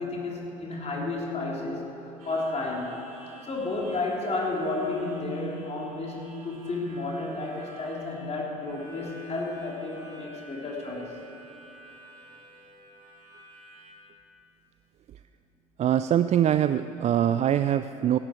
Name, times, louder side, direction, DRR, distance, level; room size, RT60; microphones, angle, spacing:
voice 1, 0.0-1.8 2.2-3.0 3.5-11.2, left 2 dB, 35° left, -2 dB, 3.2 m, -32 dB
Harmonica, 2.2-14.0, right 1 dB, 90° right, 2.6 m, -51 dB
voice 2, 15.8-18.2, right 10 dB, 40° right, 12 dB, 0.4 m, -23 dB
16.5 x 11.5 x 4.5 m, 2.9 s
hypercardioid pair, 65°, 18 cm